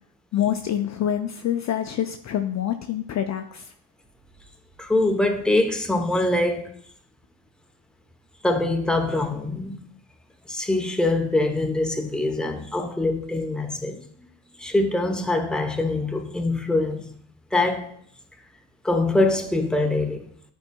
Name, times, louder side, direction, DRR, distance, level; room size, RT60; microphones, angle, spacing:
voice 1, 0.3-3.7, left 10 dB, 40° left, 0.5 m, -26 dB
voice 2, 4.8-6.7 8.4-9.9 10.5-14.0 14.6-17.1 17.5-17.9 18.8-20.2, left 2 dB, ahead, 0.8 m, -23 dB
10.5 x 4.6 x 2.3 m
supercardioid pair, 65°, 45 cm